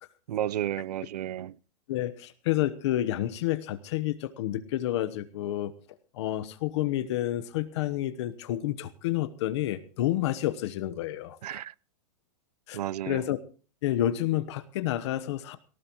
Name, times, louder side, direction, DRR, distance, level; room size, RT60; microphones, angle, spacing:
voice 1, 0.3-1.6 11.4-11.7 12.7-13.2, right 11 dB, 80° right, 0.6 m, -32 dB
voice 2, 1.9-5.7 6.1-11.6 12.7-12.8 13.1-13.4 13.8-15.6, left 13 dB, 45° left, 1.1 m, -29 dB
18.5 x 18.0 x 3.0 m
supercardioid pair, 165°, 20 cm